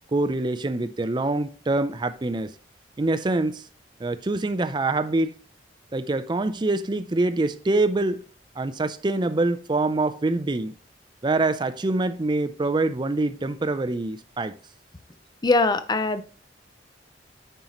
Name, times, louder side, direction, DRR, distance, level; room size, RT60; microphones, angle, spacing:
voice 1, 0.1-2.5 3.0-3.6 4.0-5.3 5.9-8.2 8.6-10.8 11.2-14.5, right 2 dB, 25° right, 0.5 m, -25 dB
voice 2, 15.4-16.2, left 3 dB, 25° left, 0.6 m, -21 dB
8.7 x 5.6 x 3.0 m
head